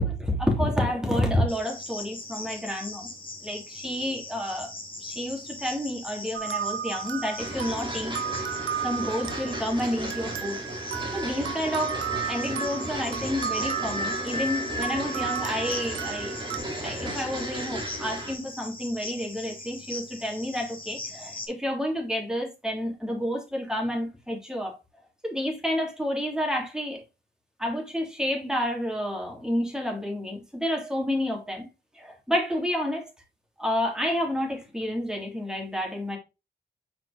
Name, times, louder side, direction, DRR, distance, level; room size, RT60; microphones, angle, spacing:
voice 1, 0.0-3.1 3.4-4.7 5.0-8.1 8.8-10.6 11.1-12.0 12.3-24.8 25.2-27.0 27.6-31.7 31.9-33.1 33.6-36.2, left 1 dB, 5° right, 2.8 m, -29 dB
Cricket, 1.5-21.5, left 2 dB, 25° left, 1.8 m, -41 dB
sound 1, 6.3-16.6, right 9 dB, 80° right, 0.8 m, -34 dB
sound 2, 7.4-18.3, right 1 dB, 25° right, 2.7 m, -34 dB
5.7 x 4.9 x 3.5 m
cardioid pair, 65°, 20 cm